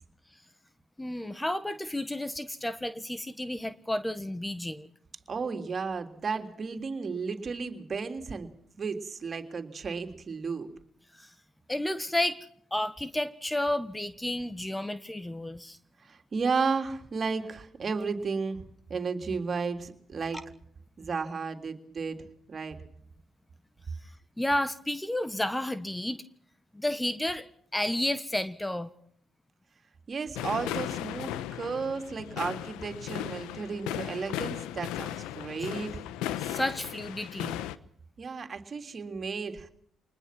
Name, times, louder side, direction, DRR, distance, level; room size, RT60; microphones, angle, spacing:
voice 1, 1.0-4.9 11.1-11.3 11.7-15.8 24.0-24.1 24.4-26.2 26.7-28.9 36.4-37.6, left 1 dB, 10° left, 13 dB, 1.4 m, -31 dB
voice 2, 5.3-8.5 8.8-10.7 16.0-18.6 18.9-20.4 21.0-22.2 22.5-22.8 30.1-36.0 38.2-39.7, right 5 dB, 45° right, 6 dB, 3.4 m, -33 dB
sound 1, 30.3-37.8, left 12 dB, 85° left, 1.0 m, -36 dB
25.0 x 20.5 x 6.1 m, 0.65 s
supercardioid pair, 65°, 0 cm